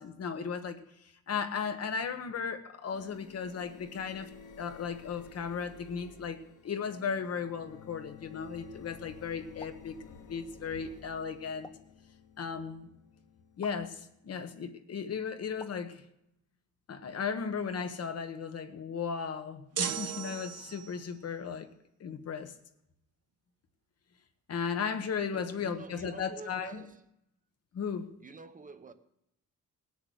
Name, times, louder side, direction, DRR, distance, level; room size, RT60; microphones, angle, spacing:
voice 1, 0.0-4.3 4.6-10.0 10.3-11.7 12.4-12.9 13.6-16.0 16.9-21.7 22.0-22.5 24.5-26.8 27.7-28.1, left 6 dB, 55° left, 1.3 m, -36 dB
sound 1, 2.9-14.5, left 6 dB, 85° left, 1.7 m, -53 dB
sound 2, 9.6-9.9 11.6-12.0 13.6-13.9 15.6-15.9, left 2 dB, 15° left, 0.8 m, -49 dB
sound 3, 19.8-21.1, right 9 dB, 55° right, 1.1 m, -36 dB
voice 2, 25.3-27.1 28.2-28.9, right 4 dB, 25° right, 0.8 m, -47 dB
19.0 x 7.0 x 8.3 m
wide cardioid pair, 165°, 30 cm